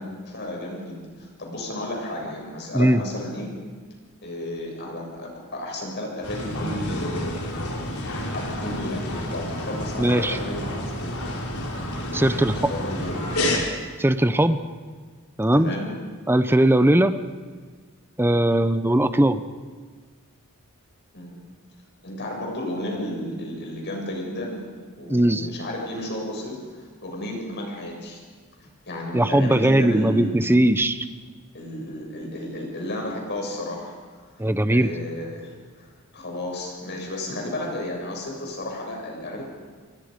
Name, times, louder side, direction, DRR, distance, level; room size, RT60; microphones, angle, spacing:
voice 1, 0.0-3.5 4.2-7.8 8.1-11.1 12.0-13.2 15.5-15.9 21.1-21.4 22.0-24.6 25.0-28.2 28.6-30.4 31.5-34.4 34.7-35.9 36.1-39.4, left 1 dB, 50° left, 0 dB, 7.0 m, -33 dB
sound 1, 6.2-13.6, left 1 dB, 75° left, 4.7 m, -30 dB
voice 2, 10.0-10.4 12.1-12.6 14.0-14.6 15.4-15.7 16.3-17.1 18.2-19.4 25.1-25.5 29.1-31.0 34.4-34.9, right 1 dB, 10° right, 11 dB, 0.8 m, -19 dB
28.0 x 23.0 x 5.3 m, 1.5 s
head